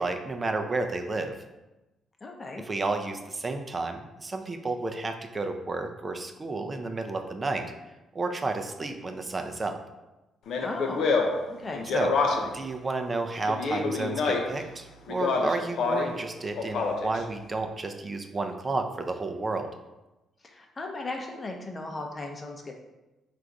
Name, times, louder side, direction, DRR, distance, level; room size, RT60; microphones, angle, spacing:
voice 1, 0.0-1.4 2.6-7.7 8.1-9.8 11.9-12.1 12.4-19.7, right 3 dB, 30° right, 6 dB, 0.5 m, -31 dB
voice 2, 2.2-2.6 10.6-11.1 11.5-11.9 20.4-22.8, left 2 dB, 30° left, 2 dB, 0.7 m, -37 dB
Speech, 10.5-12.6 13.4-14.6 15.1-16.2 16.6-17.2, left 4 dB, 70° left, 0.5 m, -27 dB
3.8 x 2.5 x 4.6 m, 1.0 s
cardioid pair, 90°, 0 cm